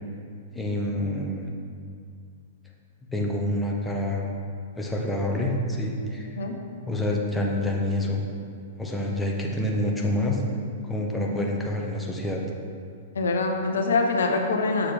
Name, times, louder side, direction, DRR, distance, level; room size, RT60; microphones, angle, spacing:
voice 1, 0.5-1.5 3.1-4.3 4.8-6.4 6.9-8.2 8.8-10.4 10.8-12.4, left 1 dB, 5° left, -1 dB, 0.9 m, -27 dB
voice 2, 13.1-14.9, left 3 dB, 80° left, 3 dB, 0.7 m, -24 dB
7.0 x 5.8 x 3.4 m, 2.3 s
hypercardioid pair, 120°, 0 cm